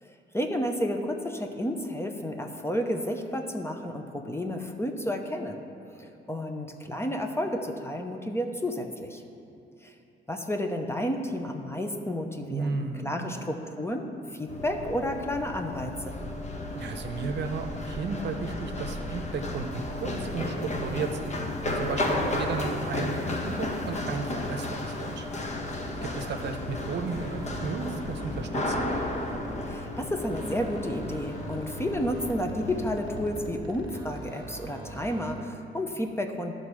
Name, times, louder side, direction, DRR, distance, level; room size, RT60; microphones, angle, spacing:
voice 1, 0.0-9.2 9.8-9.9 10.3-16.2 29.7-36.6, equal, 10° left, 4 dB, 0.8 m, -31 dB
voice 2, 12.5-13.3 16.7-21.3 21.8-25.3 26.0-28.9, right 4 dB, 60° right, 6 dB, 0.8 m, -34 dB
Run, 14.5-33.5, left 1 dB, 35° left, 1.2 m, -33 dB
sound 1, 25.7-29.9 30.2-35.6, right 2 dB, 20° right, 1.7 m, -42 dB
11.5 x 4.0 x 6.4 m, 2.8 s
cardioid pair, 90°, 20 cm